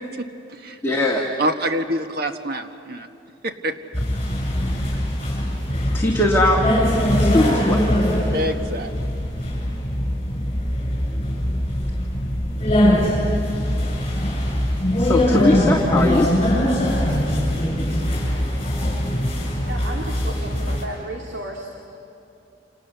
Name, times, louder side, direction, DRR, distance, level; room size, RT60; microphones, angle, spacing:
voice 1, 0.2-0.8 1.4-3.1 3.4-3.7 8.3-8.9, equal, 55° right, 7 dB, 1.4 m, -26 dB
voice 2, 0.8-1.2 5.9-6.6 7.2-7.9 15.0-16.3, left 1 dB, 15° left, -2 dB, 2.0 m, -20 dB
sound 1, 3.9-20.8, equal, 30° left, 7.6 m, -22 dB
voice 3, 19.6-21.7, right 1 dB, 70° right, 0 dB, 2.3 m, -33 dB
29.5 x 28.0 x 6.9 m, 2.7 s
head